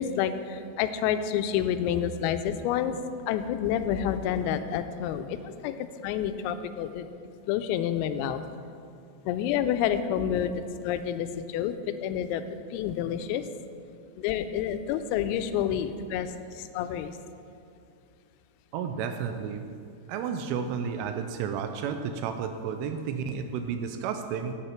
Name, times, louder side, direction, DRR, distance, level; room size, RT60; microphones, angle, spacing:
voice 1, 0.0-7.1 7.5-8.4 9.3-13.4 14.2-17.2, left 9 dB, 90° left, 10 dB, 3.3 m, -29 dB
voice 2, 18.7-19.6 20.1-24.5, right 7 dB, 85° right, 7 dB, 3.0 m, -32 dB
15.5 x 8.3 x 4.5 m, 2.6 s
omnidirectional pair, 5.9 m